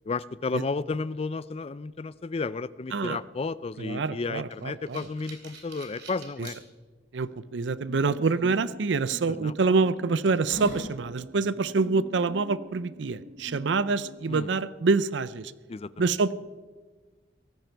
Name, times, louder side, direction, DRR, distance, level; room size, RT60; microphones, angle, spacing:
voice 1, 0.1-6.6 9.4-9.5 14.3-14.5 15.7-16.1, left 4 dB, 35° left, 18 dB, 0.4 m, -33 dB
voice 2, 3.8-5.1 6.4-6.5 7.1-15.5 16.0-16.4, right 4 dB, 80° right, 16 dB, 0.5 m, -26 dB
sound 1, 4.5-6.6 7.2-7.3 9.1-9.2 9.8-9.9 10.3-10.9, right 1 dB, 65° right, 3.2 m, -40 dB
sound 2, 7.7-14.2, equal, 50° right, 1.0 m, -46 dB
18.0 x 15.0 x 4.6 m, 1.4 s
head